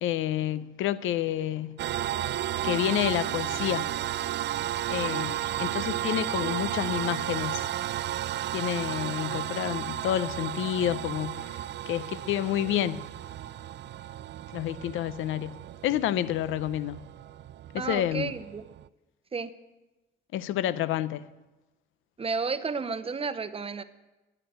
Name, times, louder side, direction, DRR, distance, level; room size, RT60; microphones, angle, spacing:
voice 1, 0.0-1.8 2.6-3.9 4.9-7.7 8.5-11.6 11.9-13.0 14.5-17.0 17.7-18.3 20.3-21.2, left 12 dB, 85° left, 0.6 m, -29 dB
sound 1, 1.8-18.9, right 12 dB, 60° right, 0.4 m, -33 dB
voice 2, 17.8-18.6 19.3-19.5 22.2-23.8, right 4 dB, 30° right, 0.8 m, -32 dB
11.0 x 9.9 x 8.1 m
cardioid pair, 90°, 20 cm